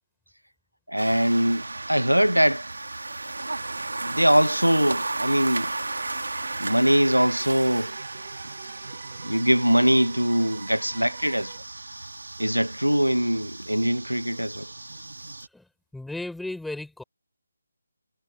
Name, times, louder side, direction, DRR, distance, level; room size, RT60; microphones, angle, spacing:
voice 1, 0.9-2.7 4.0-5.7 6.6-7.9 9.2-11.5 12.4-14.7, equal, 90° right, 1.1 m, -22 dB
sound 1, 1.0-15.5, right 2 dB, 65° right, 2.1 m, -35 dB
sound 2, 5.9-11.6, right 7 dB, 35° right, 3.2 m, -45 dB
voice 2, 15.5-17.0, left 2 dB, ahead, 3.9 m, -35 dB
figure-of-eight pair, 150°, 0 cm